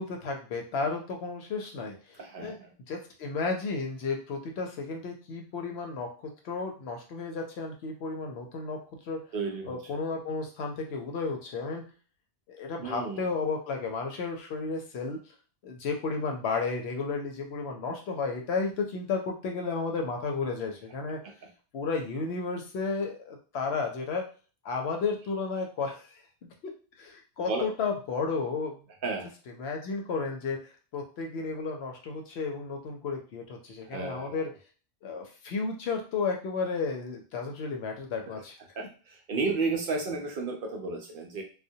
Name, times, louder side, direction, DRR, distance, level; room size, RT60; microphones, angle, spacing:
voice 1, 0.0-2.6 2.9-8.8 9.1-9.2 9.6-11.8 12.5-15.2 15.6-21.2 21.7-24.2 24.6-26.1 26.4-26.5 27.0-28.8 29.6-30.6 30.9-34.5 35.0-38.5, left 4 dB, 80° left, 2 dB, 0.9 m, -33 dB
voice 2, 2.2-2.7 9.3-9.8 12.8-13.3 21.2-21.3 27.4-27.7 29.0-29.3 33.8-34.4 38.3-38.4 38.8-41.4, right 3 dB, 65° right, 1 dB, 0.7 m, -33 dB
2.2 x 2.1 x 2.6 m, 0.37 s
omnidirectional pair, 1.1 m